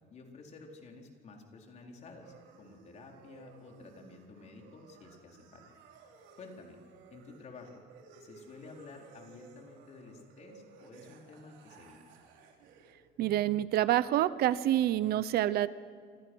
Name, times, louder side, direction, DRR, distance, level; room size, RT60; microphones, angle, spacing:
voice 1, 0.1-5.7 6.4-6.8 7.1-7.8 8.2-12.0, left 3 dB, 40° left, 2 dB, 4.1 m, -51 dB
sound 1, 2.2-12.9, right 5 dB, 90° right, 4.3 m, -57 dB
voice 2, 13.2-15.7, right 13 dB, 60° right, 16 dB, 0.8 m, -27 dB
28.0 x 26.5 x 6.3 m, 2.1 s
cardioid pair, 165°, 19 cm